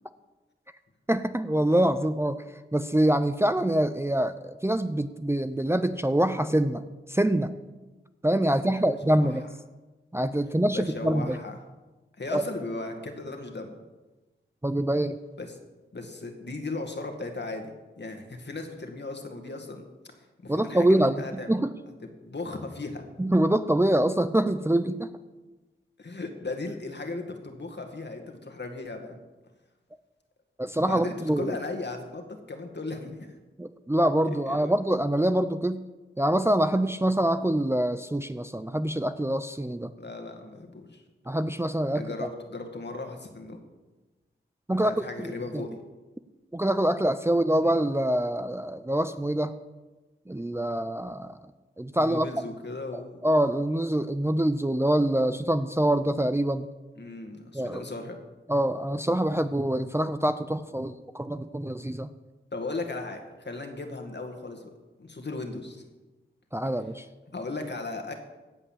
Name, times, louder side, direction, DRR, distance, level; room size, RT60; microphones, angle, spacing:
voice 1, 1.1-2.4 2.7-6.8 7.1-7.5 8.2-9.4 10.1-11.4 12.3-12.4 14.6-15.2 20.5-21.2 21.5-21.7 23.2-25.1 30.6-31.6 33.6-35.8 36.2-39.9 41.3-42.1 44.7-44.9 45.2-45.6 46.5-49.5 50.3-51.4 51.8-52.3 52.9-56.7 57.5-57.8 58.5-62.1 66.5-67.1, right 1 dB, 10° right, 10 dB, 0.6 m, -25 dB
voice 2, 10.7-11.6 12.2-13.7 15.4-15.6 15.9-17.7 18.0-19.8 20.4-21.5 22.2-23.0 26.0-29.2 30.9-33.4 34.5-34.7 40.0-41.0 41.9-43.6 44.8-45.8 51.9-53.2 57.0-58.2 62.5-64.7 65.0-65.8 67.3-68.1, left 3 dB, 55° left, 4 dB, 2.1 m, -36 dB
16.5 x 5.6 x 7.4 m, 1.2 s
cardioid pair, 40°, 21 cm